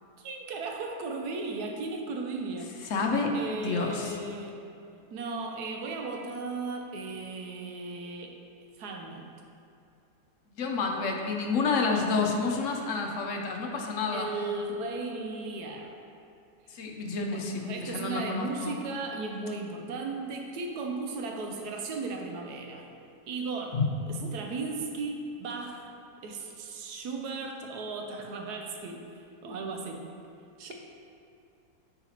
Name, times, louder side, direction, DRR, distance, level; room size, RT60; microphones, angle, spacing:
voice 1, 0.2-2.7 3.3-4.6 5.1-8.4 8.8-9.3 14.1-15.9 17.3-22.9 23.3-23.8 24.3-25.9 26.2-29.1 29.4-30.0 30.6-30.7, right 3 dB, 75° right, 2 dB, 1.2 m, -36 dB
voice 2, 2.9-3.3 3.6-4.1 10.6-14.3 16.7-18.8 23.7-23.9 24.2-24.3, left 4 dB, 60° left, 1 dB, 0.9 m, -29 dB
9.7 x 4.0 x 2.9 m, 2.6 s
omnidirectional pair, 1.7 m